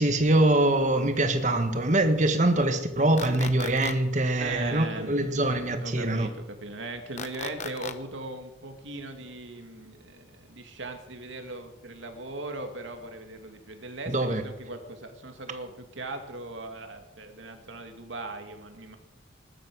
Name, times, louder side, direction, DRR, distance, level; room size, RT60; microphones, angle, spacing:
voice 1, 0.0-6.3 14.1-14.4, right 1 dB, 40° right, 1.6 m, -24 dB
sound 1, 3.2-3.9 7.2-7.9, left 5 dB, 40° left, 1.0 m, -36 dB
voice 2, 4.4-5.3 5.8-19.0, right 2 dB, 80° right, 2.4 m, -39 dB
19.5 x 12.0 x 6.3 m
head